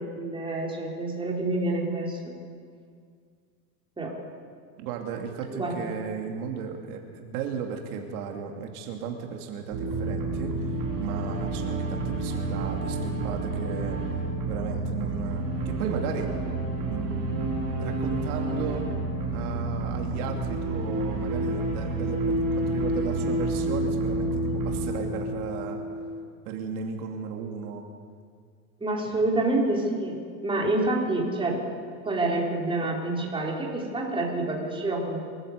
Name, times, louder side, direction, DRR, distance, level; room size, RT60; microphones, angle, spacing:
voice 1, 0.0-2.4 4.0-4.1 5.5-5.9 28.8-31.6 32.0-35.2, right 2 dB, 10° right, -2 dB, 4.0 m, -28 dB
voice 2, 4.8-10.6 11.0-14.0 14.5-16.3 16.8-18.8 19.3-25.8 26.5-27.8 29.0-29.2, right 6 dB, 75° right, 2 dB, 2.7 m, -35 dB
sound 1, 9.7-26.2, right 2 dB, 45° right, 6.4 m, -29 dB
24.0 x 14.0 x 8.1 m, 2.1 s
supercardioid pair, 135°, 45 cm